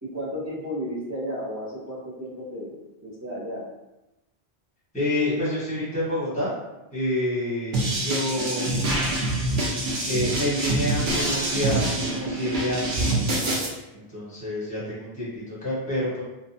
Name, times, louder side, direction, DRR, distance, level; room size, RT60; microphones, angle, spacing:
voice 1, 0.0-2.7 3.0-3.6, equal, 20° right, -7 dB, 0.6 m, -33 dB
voice 2, 4.9-6.5 6.9-8.9 10.1-13.6 13.9-16.2, left 1 dB, 10° left, -8 dB, 0.9 m, -28 dB
sound 1, 7.7-13.7, right 1 dB, 60° right, 0.7 m, -25 dB
2.7 x 2.1 x 2.5 m, 0.97 s
omnidirectional pair, 1.1 m